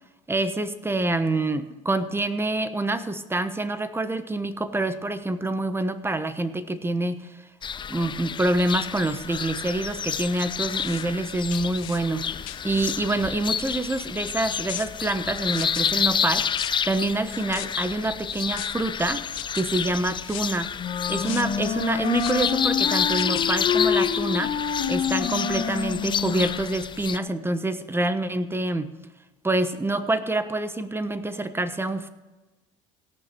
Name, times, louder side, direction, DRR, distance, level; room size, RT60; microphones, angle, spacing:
voice 1, 0.3-7.4 7.9-12.3 12.6-19.3 19.5-20.7 21.1-24.6 24.9-28.9 29.4-32.1, right 2 dB, 15° right, 12 dB, 1.1 m, -26 dB
sound 1, 7.6-27.2, left 7 dB, 30° left, 0.4 m, -29 dB
sound 2, 10.7-11.1 11.5-12.0 12.5-13.0 14.7-14.9 15.5-15.8 16.4-16.7 17.3-17.7 18.3-18.7 19.3-19.6 20.2-20.6 21.2-21.4 22.1-22.5 23.1-23.4, left 19 dB, 85° left, 0.6 m, -38 dB
Wind instrument woodwind instrument, 20.8-27.0, left 7 dB, 50° left, 1.4 m, -27 dB
17.5 x 6.0 x 5.9 m, 1.2 s
supercardioid pair, 75°, 17 cm